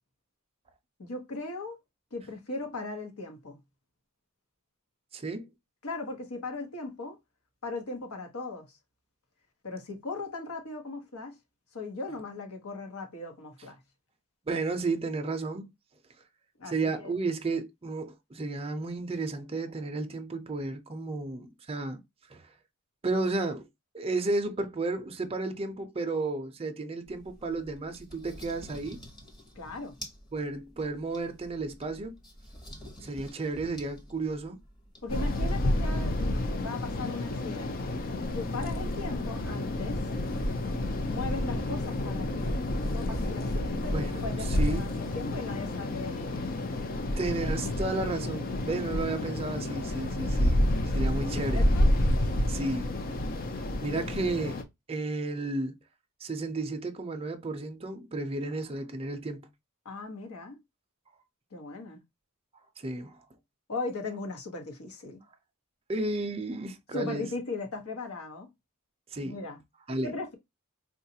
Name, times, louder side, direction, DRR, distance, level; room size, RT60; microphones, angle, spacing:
voice 1, 1.0-1.8 2.1-3.6 5.8-7.2 7.6-8.7 9.6-11.4 11.7-13.8 16.6-17.1 29.6-30.0 35.0-37.9 38.3-40.0 41.1-46.4 51.3-51.9 59.8-60.6 61.5-62.0 63.7-65.2 66.9-68.5 69.2-69.6 70.0-70.4, left 3 dB, 70° left, 0.9 m, -38 dB
voice 2, 5.1-5.5 14.5-15.7 16.7-22.0 22.3-22.4 23.0-23.7 23.9-29.0 30.3-32.2 33.0-34.6 43.9-44.2 44.5-44.9 47.2-50.7 50.9-51.6 52.5-52.9 53.8-54.6 54.9-55.8 56.2-59.5 62.8-63.2 65.9-67.3 69.1-69.4 69.9-70.2, right 3 dB, 25° right, 0.5 m, -32 dB
sound 1, 27.1-35.9, equal, 20° left, 0.9 m, -49 dB
sound 2, 35.1-54.6, left 1 dB, 40° left, 0.5 m, -29 dB
3.9 x 2.4 x 2.7 m
head